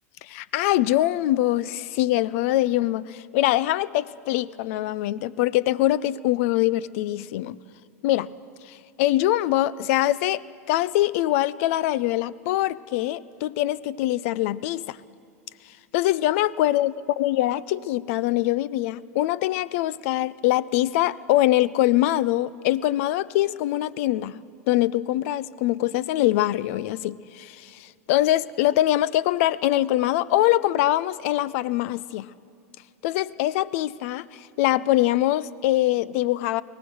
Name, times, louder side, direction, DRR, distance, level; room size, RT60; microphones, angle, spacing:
voice 1, 0.2-7.6 8.0-8.3 8.7-10.4 10.7-15.0 15.9-24.4 24.7-32.3 33.0-36.6, left 15 dB, 60° left, 20 dB, 0.6 m, -23 dB
24.0 x 17.5 x 6.3 m, 2.5 s
hypercardioid pair, 110°, 8 cm